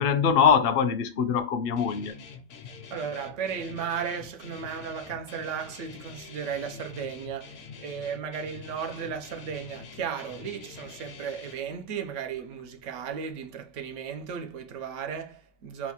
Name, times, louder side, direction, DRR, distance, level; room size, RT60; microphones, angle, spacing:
voice 1, 0.0-2.1, left 6 dB, 60° left, 0.6 m, -23 dB
Guitar, 1.8-11.5, left 6 dB, 85° left, 1.0 m, -46 dB
voice 2, 2.9-15.9, right 7 dB, 85° right, 1.0 m, -35 dB
4.1 x 2.3 x 2.8 m
omnidirectional pair, 1.2 m